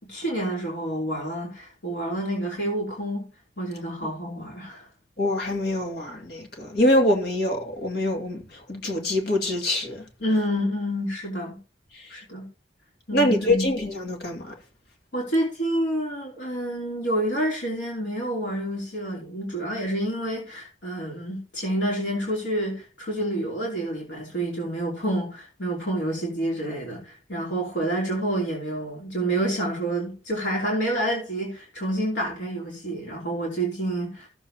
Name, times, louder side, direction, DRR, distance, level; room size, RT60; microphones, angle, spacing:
voice 1, 0.0-3.3 3.6-4.9 10.2-11.6 12.1-12.5 13.1-13.7 15.1-34.3, right 1 dB, 80° left, 3.0 m, -28 dB
voice 2, 5.2-10.0 11.9-12.1 13.1-14.5, left 1 dB, 60° left, 2.2 m, -24 dB
15.0 x 7.1 x 2.8 m
head